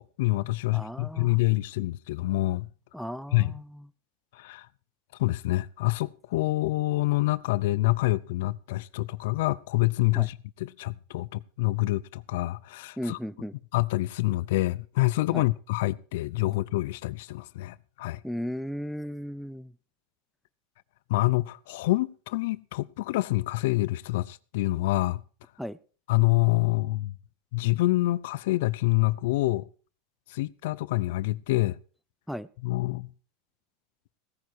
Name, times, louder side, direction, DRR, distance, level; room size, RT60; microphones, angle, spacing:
voice 1, 0.0-2.7 3.3-3.6 4.3-4.7 5.2-13.2 13.7-18.2 21.1-25.2 26.1-27.1 27.5-29.7 30.3-31.8 32.6-33.1, left 19 dB, 70° left, 0.5 m, -27 dB
voice 2, 0.7-1.4 2.9-3.9 10.1-10.3 13.0-13.5 15.3-15.5 18.2-19.7 25.6-25.8 32.3-32.5, equal, ahead, 0.5 m, -35 dB
17.0 x 9.5 x 4.6 m
supercardioid pair, 130°, 0 cm